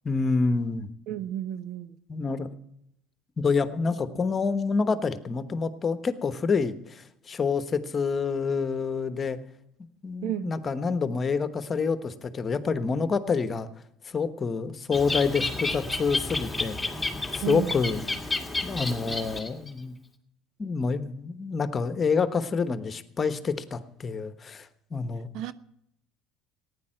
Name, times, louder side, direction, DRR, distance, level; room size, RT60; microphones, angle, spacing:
voice 1, 0.0-0.9 2.1-2.5 3.4-9.4 10.0-13.7 14.1-16.8 17.3-18.0 18.6-20.0 20.6-25.3, left 5 dB, 30° left, 1.2 m, -27 dB
voice 2, 1.1-2.0 10.2-10.5 17.4-17.7 25.3-25.5, right 12 dB, 65° right, 0.7 m, -32 dB
Bird, 14.9-19.7, left 3 dB, 5° left, 1.9 m, -31 dB
15.0 x 9.8 x 7.6 m
supercardioid pair, 90°, 0 cm